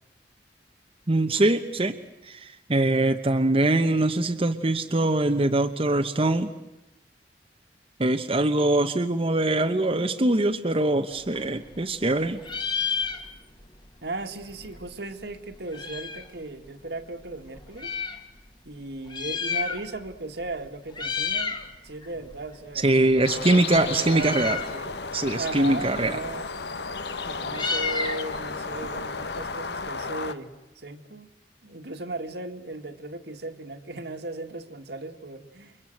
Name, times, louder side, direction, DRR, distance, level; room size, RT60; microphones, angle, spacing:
voice 1, 1.1-2.0 2.2-6.5 8.0-12.4 22.8-24.6 25.1-26.2, right 2 dB, 30° right, 6 dB, 1.0 m, -23 dB
Meow, 11.1-12.1 12.4-13.7 14.0-14.1 14.2-16.4 17.0-18.2 19.0-20.1 20.4-20.6 20.9-21.7 22.0-29.9, left 5 dB, 25° left, 2.0 m, -32 dB
voice 2, 14.0-17.9 18.6-21.6 21.8-25.0 25.4-26.5 27.3-31.3 31.6-35.8, right 2 dB, 65° right, 6 dB, 2.1 m, -37 dB
sound 1, 23.3-30.3, left 4 dB, 65° left, 1.3 m, -33 dB
29.5 x 25.0 x 7.9 m, 0.94 s
head